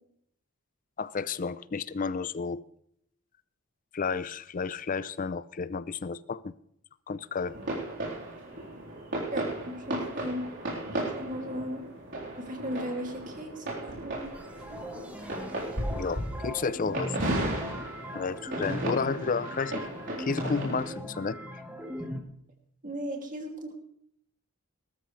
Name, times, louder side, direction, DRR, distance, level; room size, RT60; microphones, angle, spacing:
voice 1, 1.0-2.6 3.9-6.5 7.1-7.6 15.9-17.1 18.1-19.8 20.2-21.4, left 5 dB, 40° left, 0.5 m, -31 dB
sound 1, 7.5-20.9, right 1 dB, 55° right, 3.8 m, -35 dB
voice 2, 9.3-10.4 11.0-11.8 12.4-14.3 22.8-23.7, equal, 35° right, 2.5 m, -36 dB
sound 2, 14.3-22.2, equal, 5° right, 1.4 m, -39 dB
19.5 x 13.0 x 3.2 m
head